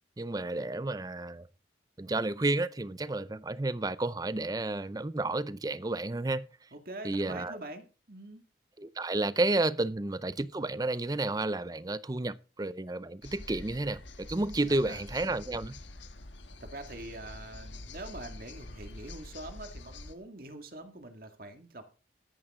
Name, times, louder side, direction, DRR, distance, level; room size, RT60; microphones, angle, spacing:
voice 1, 0.2-1.5 2.0-6.5 7.0-7.6 8.8-15.8, right 2 dB, 20° right, 0.5 m, -31 dB
voice 2, 6.7-8.4 14.8-15.0 16.6-21.8, right 2 dB, 50° right, 2.1 m, -44 dB
sound 1, 13.2-20.2, left 2 dB, 80° left, 1.5 m, -46 dB
14.0 x 11.0 x 3.7 m
head